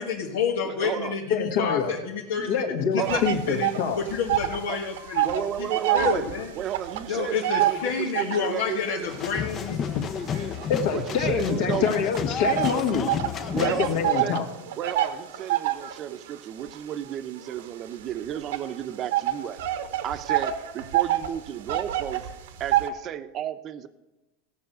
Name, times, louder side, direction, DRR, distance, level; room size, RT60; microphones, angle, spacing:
voice 1, 0.0-3.7 3.9-5.7 5.9-6.5 7.1-9.8, left 6 dB, 90° left, -1 dB, 1.5 m, -29 dB
voice 2, 0.6-1.2 3.0-3.3 4.7-4.8 5.2-6.3 6.5-9.1 10.9-11.9 13.5-14.4 14.8-19.6 20.0-22.3 22.6-23.9, right 10 dB, 35° right, 11 dB, 0.8 m, -33 dB
voice 3, 1.3-1.9 2.4-4.0 9.9-10.0 10.7-13.1 13.5-14.5, left 6 dB, 65° left, 4 dB, 1.8 m, -25 dB
sound 1, 3.1-4.6 4.9-8.6 9.2-11.2 11.8-22.9, right 13 dB, 85° right, 1.3 m, -28 dB
sound 2, 9.1-14.1, left 8 dB, 30° left, 0.6 m, -31 dB
16.5 x 5.9 x 7.9 m, 1.1 s
supercardioid pair, 145°, 0 cm